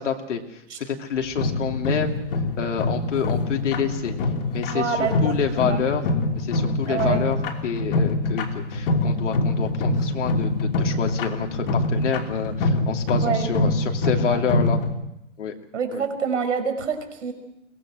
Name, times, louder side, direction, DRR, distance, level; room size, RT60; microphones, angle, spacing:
voice 1, 0.0-2.2 2.6-4.1 4.5-6.0 6.3-14.8 15.4-15.5 15.9-16.0, left 7 dB, 75° left, 3 dB, 2.9 m, -28 dB
sound 1, 1.4-14.9, left 2 dB, 50° left, 3.1 m, -24 dB
voice 2, 4.7-5.8 6.9-7.2 13.1-13.5 14.3-14.4 15.7-17.3, right 6 dB, 75° right, 6 dB, 5.6 m, -26 dB
23.0 x 19.5 x 6.3 m, 0.84 s
hypercardioid pair, 155°, 37 cm